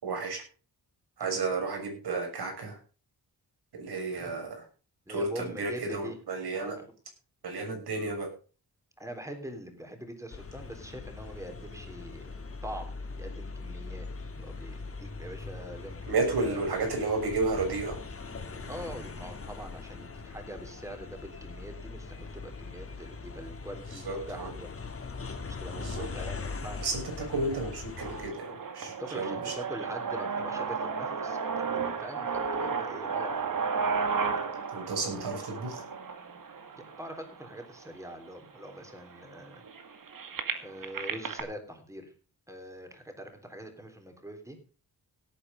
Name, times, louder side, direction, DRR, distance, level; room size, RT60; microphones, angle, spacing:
voice 1, 0.0-0.4 1.2-2.8 3.7-4.7 5.1-6.8 7.4-8.3 16.1-18.0 23.9-24.5 25.7-26.1 26.8-29.5 34.7-35.9, right 3 dB, 85° right, 3 dB, 6.5 m, -32 dB
voice 2, 5.1-6.2 6.5-6.8 9.0-12.3 12.6-14.1 14.3-16.0 16.4-16.6 18.7-24.7 25.5-26.9 28.8-33.4 36.7-39.6 40.6-42.1 42.5-44.6, equal, 10° right, 5 dB, 3.5 m, -43 dB
sound 1, 10.3-28.3, left 4 dB, 35° left, 2.3 m, -41 dB
sound 2, 28.0-37.9 38.6-38.7 38.9-41.4, right 5 dB, 60° right, 2.1 m, -33 dB
17.5 x 8.8 x 5.2 m, 0.36 s
wide cardioid pair, 140°, 38 cm